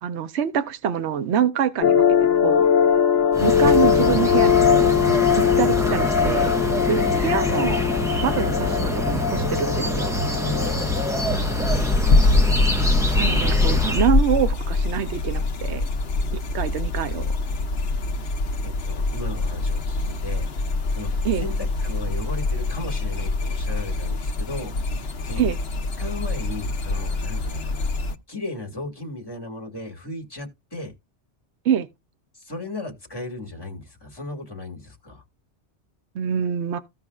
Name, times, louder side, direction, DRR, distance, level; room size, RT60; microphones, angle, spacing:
voice 1, 0.0-2.7 3.4-5.0 5.4-6.5 6.9-7.8 8.2-10.2 13.2-15.9 16.5-17.4 21.2-21.4 25.4-25.6 31.6-31.9 36.1-36.8, right 8 dB, 70° right, 1.0 m, -25 dB
sound 1, 1.8-11.6, left 8 dB, 90° left, 1.0 m, -21 dB
sound 2, 3.3-14.1, left 1 dB, 5° right, 1.3 m, -25 dB
voice 2, 11.2-11.8 18.6-20.5 20.9-21.1 21.4-24.7 25.2-25.4 26.0-27.9 28.3-30.9 32.3-35.2, left 2 dB, 20° left, 2.0 m, -36 dB
sound 3, 11.6-28.2, left 2 dB, 60° left, 1.1 m, -24 dB
15.5 x 5.7 x 2.4 m
omnidirectional pair, 1.2 m